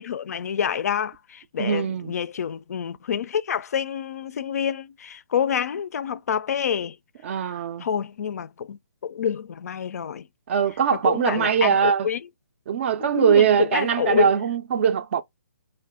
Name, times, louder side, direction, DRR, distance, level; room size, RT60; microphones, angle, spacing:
voice 1, 0.0-7.0 7.8-10.3 10.9-12.2 13.0-14.3, left 8 dB, 60° left, 0.3 m, -27 dB
voice 2, 1.6-2.1 7.2-7.9 10.5-12.1 12.7-15.2, right 8 dB, 40° right, 0.4 m, -21 dB
2.6 x 2.2 x 3.5 m
hypercardioid pair, 145°, 10 cm